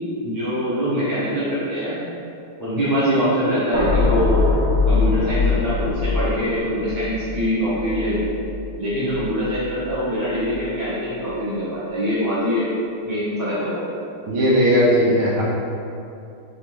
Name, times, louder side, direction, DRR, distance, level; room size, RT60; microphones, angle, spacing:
voice 1, 0.2-2.1 2.6-4.5 4.9-8.3 8.8-12.7 13.0-14.0, equal, 15° left, -12 dB, 0.7 m, -23 dB
sound 1, 3.7-10.0 10.4-10.7, left 4 dB, 45° right, 1.0 m, -23 dB
voice 2, 14.3-15.4, equal, 75° right, -6 dB, 1.7 m, -17 dB
3.9 x 3.8 x 3.2 m, 2.6 s
omnidirectional pair, 2.4 m